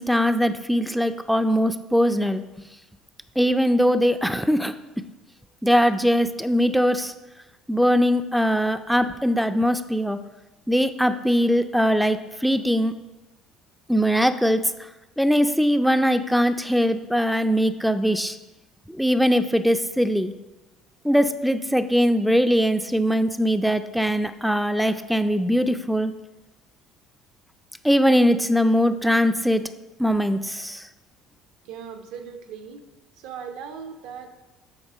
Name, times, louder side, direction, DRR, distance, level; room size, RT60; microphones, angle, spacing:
voice 1, 0.0-2.4 3.4-4.7 5.6-7.1 7.7-10.2 10.7-12.9 13.9-14.6 15.2-18.4 18.9-20.3 21.0-26.1 27.8-29.6 30.0-30.9, equal, ahead, 9 dB, 0.4 m, -21 dB
voice 2, 31.6-32.8 33.1-34.3, right 7 dB, 75° right, 6 dB, 0.8 m, -38 dB
7.9 x 3.6 x 5.5 m, 1.1 s
supercardioid pair, 80°, 0 cm